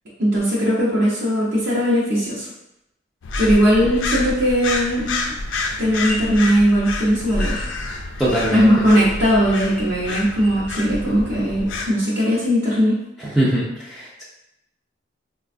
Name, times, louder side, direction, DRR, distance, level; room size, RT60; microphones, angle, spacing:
voice 1, 0.2-2.5 3.4-5.2 5.8-7.6 8.5-13.0, equal, 60° right, -8 dB, 0.7 m, -19 dB
sound 1, 3.2-11.9, left 3 dB, 85° left, 0.4 m, -28 dB
sound 2, 6.0-6.2 6.5-10.8, left 1 dB, 45° left, 0.7 m, -37 dB
voice 2, 8.2-8.7 13.2-14.2, right 1 dB, ahead, -8 dB, 0.4 m, -22 dB
4.1 x 2.2 x 2.5 m, 0.85 s
head